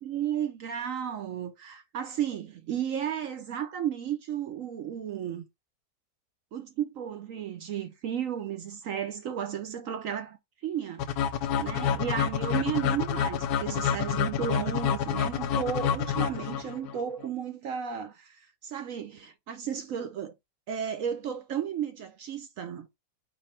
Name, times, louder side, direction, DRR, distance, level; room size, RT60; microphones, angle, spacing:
voice 1, 0.0-5.5 6.5-11.3 11.6-20.3 20.7-22.9, right 9 dB, 65° right, 0.9 m, -34 dB
sound 1, 11.0-16.9, left 8 dB, 75° left, 1.1 m, -28 dB
4.6 x 2.6 x 4.3 m
omnidirectional pair, 1.8 m